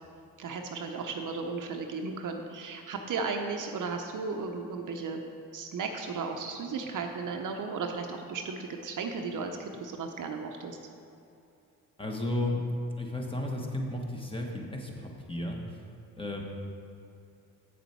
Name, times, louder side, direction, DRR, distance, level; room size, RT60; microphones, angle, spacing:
voice 1, 0.4-5.2 5.5-10.8, right 4 dB, 60° right, 3 dB, 0.8 m, -35 dB
voice 2, 12.0-12.6 13.0-15.6 16.2-16.4, left 1 dB, 15° left, 0 dB, 1.4 m, -33 dB
7.9 x 6.8 x 4.5 m, 2.7 s
cardioid pair, 70°, 36 cm